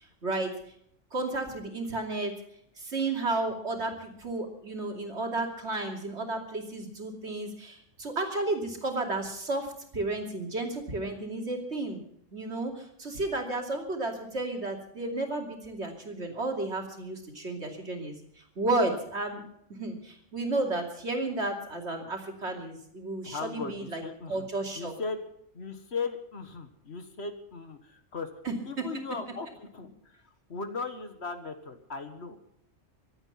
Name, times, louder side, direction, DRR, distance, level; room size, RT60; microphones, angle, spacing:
voice 1, 1.1-2.3 2.8-12.0 12.3-18.1 18.6-24.0 24.3-24.9 28.4-28.5, right 2 dB, 60° right, 2 dB, 3.1 m, -32 dB
voice 2, 23.2-24.5 24.7-25.2 25.5-28.3 28.6-32.4, left 4 dB, 55° left, 8 dB, 1.8 m, -38 dB
24.5 x 9.0 x 5.7 m, 0.71 s
omnidirectional pair, 1.3 m